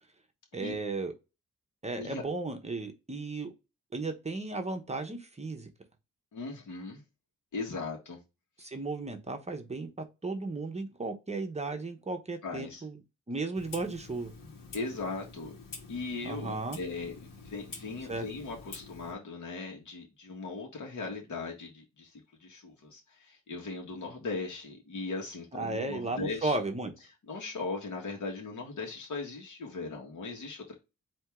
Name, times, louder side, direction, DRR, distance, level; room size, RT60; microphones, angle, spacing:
voice 1, 0.5-1.1 1.8-3.5 3.9-5.7 8.6-9.9 10.2-13.0 13.3-14.3 16.2-16.8 18.1-18.3 25.5-26.9, right 3 dB, 20° right, 0.8 m, -35 dB
voice 2, 6.3-7.0 7.5-8.2 12.4-12.8 14.7-15.5 15.9-26.6 27.3-30.8, left 3 dB, 65° left, 1.5 m, -38 dB
Clock, 13.5-19.1, left 4 dB, 80° left, 1.5 m, -48 dB
4.4 x 2.9 x 3.5 m
wide cardioid pair, 125°, 32 cm